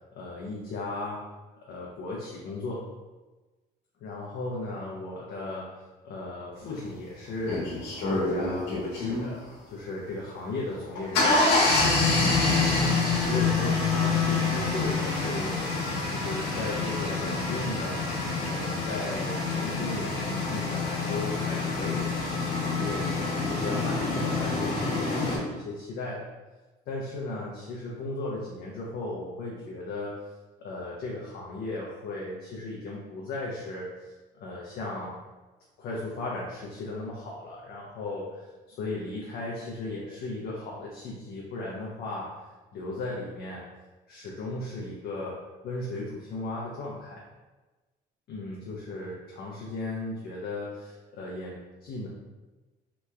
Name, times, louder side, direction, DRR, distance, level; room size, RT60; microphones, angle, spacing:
voice 1, 0.1-1.2 1.7-2.8 4.0-7.8 8.1-9.4 9.7-11.4 13.3-15.8 16.1-18.1 18.4-22.2 22.5-26.3 26.9-30.2 30.6-35.2 35.8-42.4 42.7-43.6 44.1-45.4 45.6-47.2 48.3-52.1, left 2 dB, 65° left, -4 dB, 0.6 m, -36 dB
sound 1, 6.8-6.9 7.4-9.3 10.7-25.4, left 3 dB, 85° left, 1.1 m, -27 dB
2.9 x 2.2 x 3.3 m, 1.2 s
cardioid pair, 110°, 17 cm